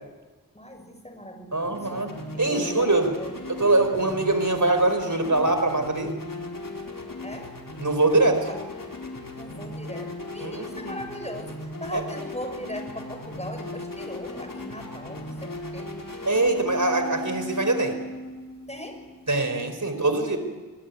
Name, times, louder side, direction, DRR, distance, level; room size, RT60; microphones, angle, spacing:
voice 1, 0.5-2.1 2.3-3.3 7.2-7.5 8.4-8.6 9.4-15.9 18.7-19.0, equal, 20° left, 5 dB, 6.7 m, -39 dB
voice 2, 1.5-2.1 2.4-3.1 3.5-6.1 7.8-8.5 10.4-10.9 11.9-12.0 16.3-18.0 19.3-20.4, right 2 dB, 60° right, 8 dB, 4.5 m, -23 dB
sound 1, 1.6-19.4, left 1 dB, 65° left, 4.7 m, -37 dB
25.0 x 24.5 x 9.4 m, 1.3 s
wide cardioid pair, 40°, 35 cm